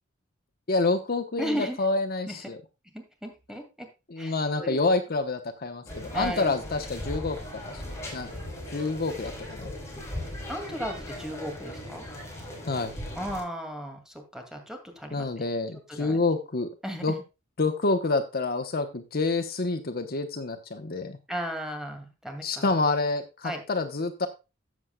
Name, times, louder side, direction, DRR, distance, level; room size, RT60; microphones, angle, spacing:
voice 1, 0.7-2.6 4.1-7.4 7.6-7.8 8.1-8.3 8.7-9.7 12.7-12.9 15.1-16.7 17.0-17.1 17.6-21.2 22.4-24.3, left 3 dB, 50° left, 7 dB, 0.9 m, -28 dB
voice 2, 1.4-1.8 2.3-2.4 2.9-3.9 4.2-4.8 6.1-6.6 10.5-12.1 13.2-15.3 15.9-16.2 16.8-17.2 21.3-22.7 23.4-23.6, equal, 5° right, 4 dB, 2.3 m, -35 dB
sound 1, 5.9-13.4, left 1 dB, 15° left, 4.0 m, -38 dB
13.5 x 8.1 x 2.3 m, 0.27 s
head